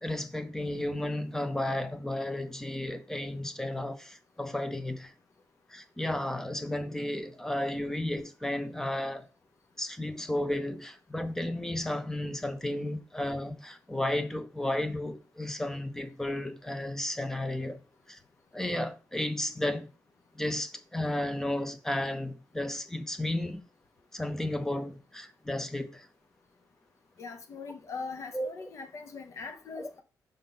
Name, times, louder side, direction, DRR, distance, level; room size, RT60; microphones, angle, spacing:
voice 1, 0.0-5.1 5.7-9.3 9.8-17.8 18.1-18.2 18.5-19.9 20.3-23.6 24.1-26.1 28.3-28.5 29.8-29.9, left 1 dB, 5° left, 0.6 m, -33 dB
voice 2, 27.2-30.0, left 4 dB, 50° left, 1.0 m, -41 dB
5.2 x 3.6 x 5.7 m
wide cardioid pair, 175°, 7 cm